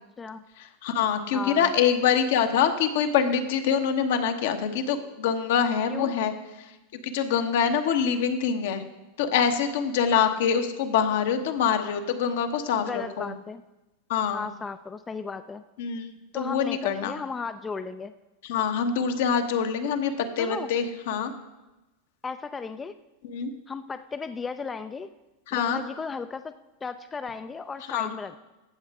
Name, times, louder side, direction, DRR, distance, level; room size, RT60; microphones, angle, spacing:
voice 1, 0.6-6.3 6.9-8.8 9.2-13.3 14.1-14.5 15.8-16.0 16.3-17.2 18.4-21.3 23.2-23.5 25.5-25.8 27.9-28.1, left 7 dB, 70° left, 6 dB, 1.1 m, -25 dB
voice 2, 1.3-1.7 5.9-6.1 10.1-10.4 12.9-13.6 14.3-15.6 16.3-18.1 20.4-20.7 22.2-22.9 23.7-25.1 25.5-26.5 26.8-28.4, left 5 dB, 20° left, 10 dB, 0.4 m, -35 dB
14.5 x 7.2 x 3.6 m, 1.0 s
hypercardioid pair, 100°, 0 cm